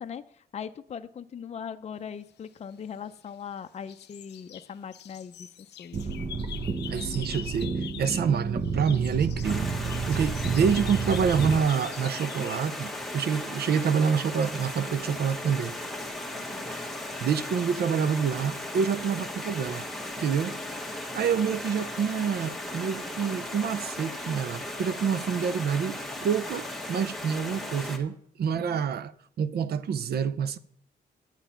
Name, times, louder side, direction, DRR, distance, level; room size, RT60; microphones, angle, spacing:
voice 1, 0.0-6.1 16.3-16.7 28.5-28.8, left 7 dB, 40° left, 0.5 m, -40 dB
sound 1, 2.7-3.5 3.9-8.4 8.6-12.6, left 11 dB, 85° left, 0.6 m, -44 dB
sound 2, 5.9-11.6, right 4 dB, 35° right, 0.9 m, -31 dB
voice 2, 6.9-9.7 10.1-15.8 16.7-16.9 17.2-19.9 20.2-20.6 21.1-29.1 29.4-30.6, right 7 dB, 70° right, 0.6 m, -27 dB
Stream, 9.4-28.0, left 1 dB, ahead, 1.5 m, -36 dB
9.1 x 8.9 x 5.7 m
cardioid pair, 115°, 17 cm